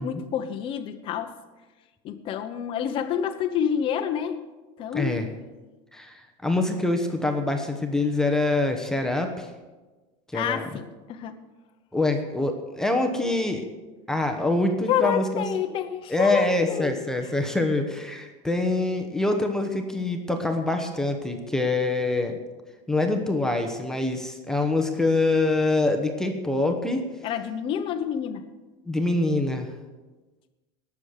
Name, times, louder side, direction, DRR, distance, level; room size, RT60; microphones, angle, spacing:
voice 1, 0.0-1.3 2.0-4.4 4.8-5.3 10.3-11.3 14.9-16.9 27.2-28.4, left 9 dB, 30° left, 6 dB, 0.9 m, -28 dB
voice 2, 4.9-5.3 5.9-9.5 10.3-10.7 11.9-13.7 14.1-15.4 16.1-22.4 22.9-27.0 28.9-29.7, left 2 dB, 5° left, 4 dB, 1.0 m, -25 dB
19.0 x 7.1 x 6.6 m, 1.2 s
supercardioid pair, 160°, 16 cm